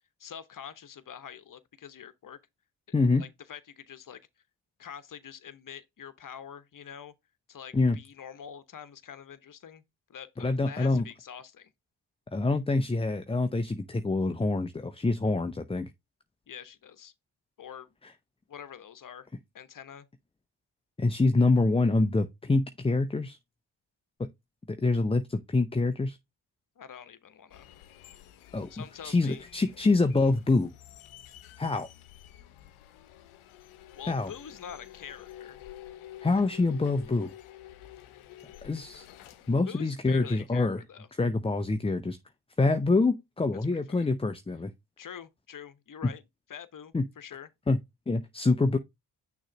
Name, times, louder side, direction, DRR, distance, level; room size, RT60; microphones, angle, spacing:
voice 1, 0.2-2.4 3.2-4.2 4.8-7.1 7.5-9.8 10.1-11.7 16.5-17.1 17.6-17.9 18.5-19.3 19.5-20.1 26.8-27.7 28.7-29.4 33.9-35.6 39.2-39.3 39.6-41.1 43.7-44.1 45.0-46.2 46.5-47.5, left 8 dB, 40° left, 1.0 m, -45 dB
voice 2, 2.9-3.2 7.7-8.0 10.4-11.0 12.3-15.9 21.0-23.4 24.2-24.3 24.7-26.2 28.5-30.7 31.6-31.9 34.1-34.3 36.2-37.3 38.6-39.1 39.5-40.8 41.2-42.2 42.6-44.7 46.0-46.1 46.9-47.0 47.7-47.8 48.1-48.8, left 3 dB, 10° left, 0.5 m, -26 dB
sound 1, 27.5-39.6, left 12 dB, 80° left, 0.8 m, -50 dB
6.3 x 3.1 x 5.0 m
supercardioid pair, 45°, 48 cm